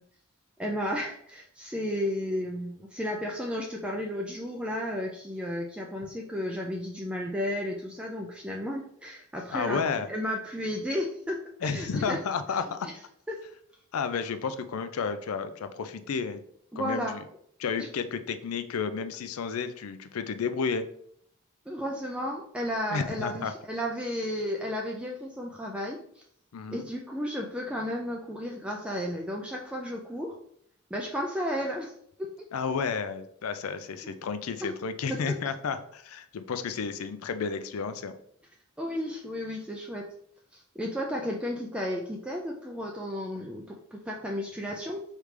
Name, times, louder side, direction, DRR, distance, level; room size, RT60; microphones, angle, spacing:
voice 1, 0.6-9.8 10.1-12.2 12.8-12.9 13.3-13.4 14.4-14.5 16.7-17.2 17.8-17.9 21.7-26.2 26.7-30.4 30.9-31.9 32.4-32.5 34.0-34.2 34.6-34.7 35.1-35.2 38.8-40.1 40.5-45.0, equal, 5° right, -1 dB, 0.3 m, -33 dB
voice 2, 9.5-10.1 11.6-12.9 13.9-16.4 16.7-17.2 17.6-20.8 22.9-23.5 26.5-26.8 32.5-38.1, left 5 dB, 90° left, 10 dB, 0.4 m, -32 dB
5.0 x 3.2 x 3.2 m, 0.68 s
head